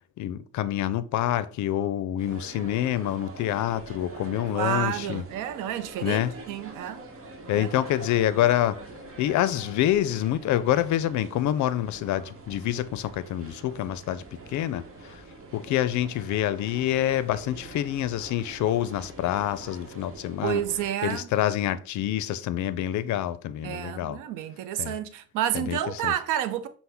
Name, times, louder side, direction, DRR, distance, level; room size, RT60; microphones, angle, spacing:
voice 1, 0.2-5.2 6.0-6.3 7.5-8.8 9.2-14.2 14.5-15.2 15.5-20.6 21.0-24.2 24.8-24.9 25.5-26.1, left 12 dB, 75° left, 0.4 m, -27 dB
sound 1, 2.2-20.9, right 2 dB, 45° right, 0.9 m, -44 dB
voice 2, 4.5-7.0 7.5-7.7 20.4-21.3 23.6-26.7, right 11 dB, 90° right, 0.5 m, -30 dB
5.8 x 2.1 x 3.4 m
cardioid pair, 90°, 30 cm